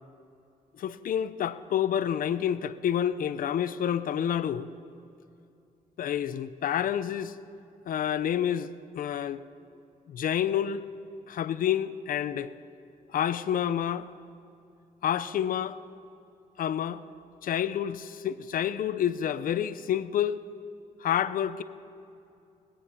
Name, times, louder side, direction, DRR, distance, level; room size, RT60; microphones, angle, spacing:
voice 1, 0.8-4.7 6.0-7.3 7.9-9.4 10.1-10.8 11.3-12.5 13.1-14.1 15.0-15.8 16.6-17.0 17.4-20.4 21.0-21.6, left 9 dB, 70° left, 13 dB, 0.7 m, -28 dB
22.0 x 8.7 x 5.5 m, 2.6 s
cardioid pair, 90°, 15 cm